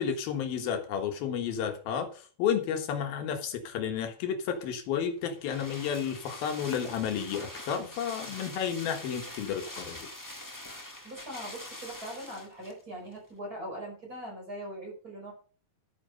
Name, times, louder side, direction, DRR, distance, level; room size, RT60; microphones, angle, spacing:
voice 1, 0.0-10.1, left 8 dB, 80° left, 5 dB, 3.4 m, -32 dB
sound 1, 4.6-12.8 13.1-13.2, left 1 dB, 10° left, 0.8 m, -44 dB
voice 2, 11.0-15.3, right 1 dB, 25° right, 0 dB, 5.6 m, -41 dB
12.5 x 9.6 x 5.3 m, 0.41 s
omnidirectional pair, 4.2 m